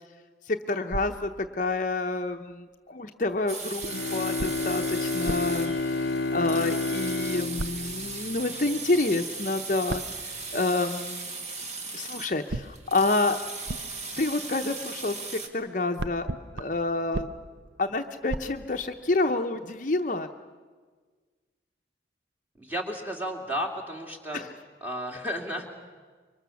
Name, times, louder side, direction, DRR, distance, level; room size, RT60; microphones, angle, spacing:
voice 1, 0.5-5.7 6.3-10.0 10.5-11.3 11.9-13.4 14.2-16.3 16.5-17.3 17.8-20.3 24.3-24.5, left 2 dB, 45° left, 5 dB, 0.8 m, -28 dB
sound 1, 0.9-2.1 3.8-6.7 7.6-8.4 9.9-11.0 12.5-15.4 15.6-19.3, right 2 dB, 75° right, 0.7 m, -39 dB
sound 2, 3.5-15.5, right 3 dB, 40° right, 1.9 m, -38 dB
Bowed string instrument, 3.9-8.8, left 3 dB, 85° left, 0.7 m, -30 dB
voice 2, 22.5-24.4 24.8-25.7, equal, 10° right, 2 dB, 2.5 m, -33 dB
25.5 x 23.5 x 7.1 m, 1.5 s
head